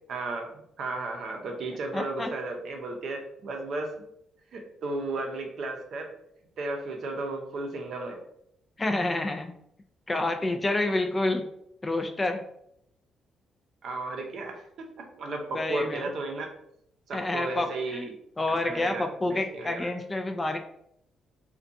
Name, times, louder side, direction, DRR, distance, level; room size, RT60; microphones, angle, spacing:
voice 1, 0.1-3.9 4.5-6.1 6.6-8.2 13.8-16.5 17.1-18.1 18.5-19.9, right 2 dB, 65° right, 3 dB, 0.5 m, -34 dB
voice 2, 1.9-2.3 8.8-9.5 10.1-11.5 11.8-12.4 15.5-16.0 17.1-18.1 18.4-20.6, left 2 dB, 25° left, 5 dB, 0.3 m, -28 dB
2.5 x 2.2 x 2.6 m, 0.73 s
cardioid pair, 90°, 0 cm